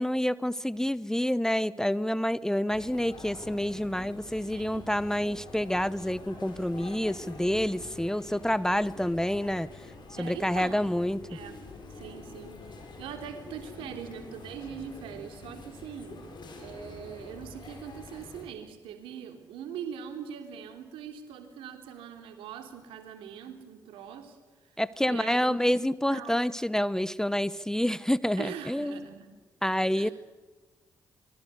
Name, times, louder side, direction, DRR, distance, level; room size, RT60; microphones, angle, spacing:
voice 1, 0.0-9.7 10.2-11.2 24.8-29.0 29.6-30.1, equal, 5° left, 18 dB, 0.9 m, -28 dB
sound 1, 2.7-18.4, left 3 dB, 55° left, 7.8 m, -46 dB
voice 2, 4.5-4.9 6.7-6.9 10.2-10.9 11.3-11.6 12.0-16.3 16.6-24.4 25.1-26.5 28.4-29.3 29.9-30.1, right 8 dB, 75° right, 6 dB, 3.4 m, -42 dB
25.0 x 23.0 x 8.3 m, 1.3 s
hypercardioid pair, 40°, 9 cm